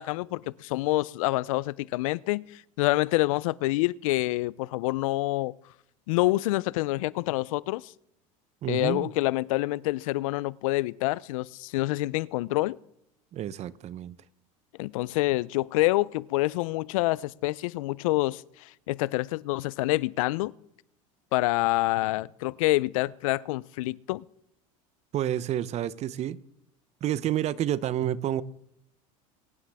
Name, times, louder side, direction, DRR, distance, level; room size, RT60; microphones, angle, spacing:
voice 1, 0.0-5.5 6.1-7.9 8.7-12.8 14.8-20.5 21.3-24.2, left 19 dB, 80° left, 0.4 m, -27 dB
voice 2, 8.6-9.1 13.3-14.2 25.1-26.4 27.0-28.4, right 11 dB, 40° right, 0.7 m, -29 dB
22.0 x 9.8 x 3.5 m
supercardioid pair, 105°, 17 cm